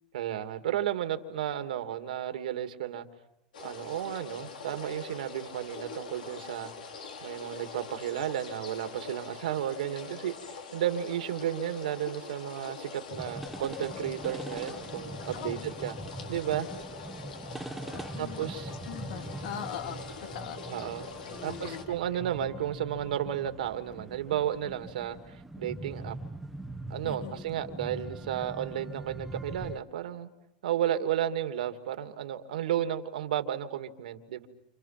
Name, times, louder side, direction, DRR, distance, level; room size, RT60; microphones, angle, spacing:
voice 1, 0.1-3.1 3.6-6.7 7.2-15.9 16.3-16.7 18.2-18.7 20.7-21.1 21.4-26.2 26.9-30.3 30.6-34.5, right 11 dB, 80° right, 8 dB, 2.5 m, -33 dB
sound 1, 3.5-21.8, left 4 dB, 85° left, 4.9 m, -44 dB
sound 2, 13.1-29.8, right 2 dB, 5° right, 1.3 m, -42 dB
voice 2, 15.3-15.7 17.9-18.5 18.8-20.0 20.3-22.0 27.0-27.5 30.9-31.0, left 10 dB, 65° left, 7 dB, 2.5 m, -42 dB
30.0 x 28.5 x 6.0 m, 0.83 s
hypercardioid pair, 115°, 4 cm